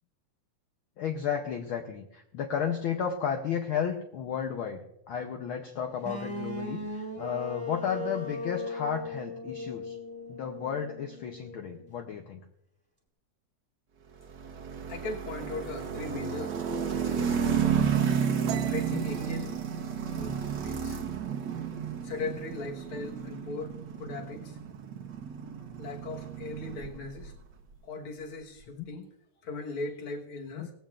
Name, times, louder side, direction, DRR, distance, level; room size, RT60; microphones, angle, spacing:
voice 1, 1.0-10.0 10.3-12.4 18.9-19.0 28.8-28.9 30.5-30.7, left 7 dB, 75° left, 3 dB, 1.2 m, -33 dB
sound 1, 6.0-11.9, left 3 dB, 10° right, 1.6 m, -38 dB
sound 2, 14.2-27.4, right 7 dB, 55° right, 1.2 m, -32 dB
voice 2, 14.9-17.4 18.6-19.5 20.2-21.0 22.0-24.6 25.8-27.3 27.8-29.1 29.4-30.7, left 3 dB, 55° left, 2 dB, 2.0 m, -39 dB
sound 3, 18.5-21.9 22.2-22.6 22.9-23.5 23.7-24.5, right 11 dB, 75° right, 2.1 m, -45 dB
18.0 x 15.5 x 2.5 m, 0.81 s
omnidirectional pair, 3.4 m